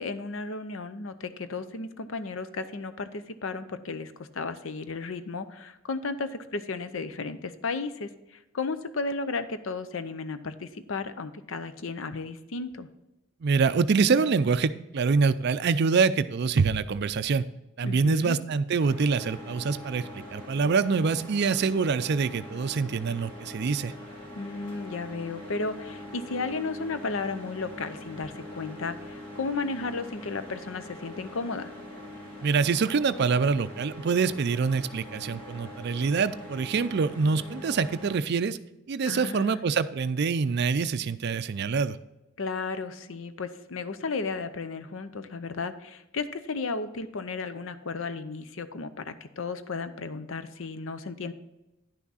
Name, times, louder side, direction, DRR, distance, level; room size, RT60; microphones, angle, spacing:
voice 1, 0.0-12.9 17.8-18.4 24.4-31.7 39.1-39.6 42.4-51.3, left 4 dB, 65° left, 11 dB, 0.6 m, -34 dB
voice 2, 13.4-17.4 17.8-23.9 32.4-38.6 38.9-42.0, right 5 dB, 50° right, 12 dB, 0.4 m, -25 dB
sound 1, 18.8-38.2, left 1 dB, 25° left, 2.0 m, -43 dB
10.5 x 6.0 x 4.1 m, 0.96 s
head